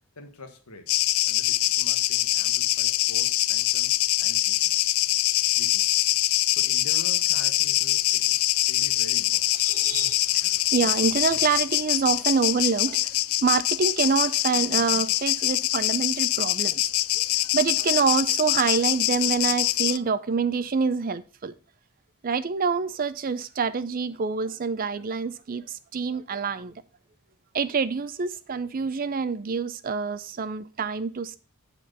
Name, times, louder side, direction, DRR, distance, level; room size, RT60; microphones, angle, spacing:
voice 1, 0.2-1.0 1.3-4.7 5.6-5.9 6.5-9.5, left 2 dB, 85° left, 1.4 m, -45 dB
sound 1, 0.9-20.0, left 17 dB, 70° left, 0.3 m, -24 dB
voice 2, 9.6-13.2 13.4-16.9 17.1-17.2 17.5-21.5 22.2-26.8 27.5-31.4, right 5 dB, 40° right, 0.4 m, -26 dB
8.4 x 4.4 x 5.1 m
head